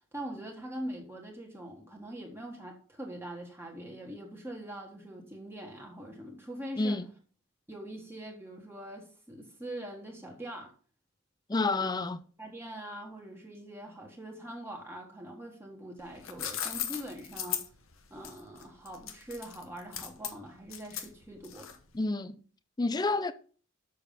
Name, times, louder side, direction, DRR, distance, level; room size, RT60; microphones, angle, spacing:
voice 1, 0.1-7.0 7.7-10.7 11.5-11.9 12.4-17.7 18.1-21.8, right 1 dB, 10° right, 1.4 m, -43 dB
voice 2, 6.8-7.1 11.5-12.2 21.9-22.4 22.8-23.3, left 3 dB, 20° left, 0.4 m, -29 dB
sound 1, 16.0-22.0, left 10 dB, 75° left, 1.1 m, -38 dB
6.9 x 6.3 x 5.4 m
head